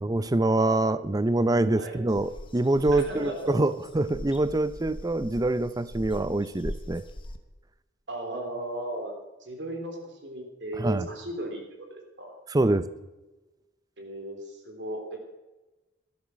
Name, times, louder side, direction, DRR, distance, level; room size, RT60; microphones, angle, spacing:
voice 1, 0.0-7.0 10.8-11.1 12.5-12.9, right 2 dB, 20° right, 14 dB, 0.5 m, -25 dB
sound 1, 2.1-7.4, left 1 dB, 30° left, 1.0 m, -41 dB
voice 2, 2.9-3.6 8.1-9.1 9.4-11.6 11.9-12.3 14.0-15.2, right 1 dB, 70° right, 3 dB, 3.4 m, -36 dB
12.0 x 11.5 x 6.2 m, 1.1 s
head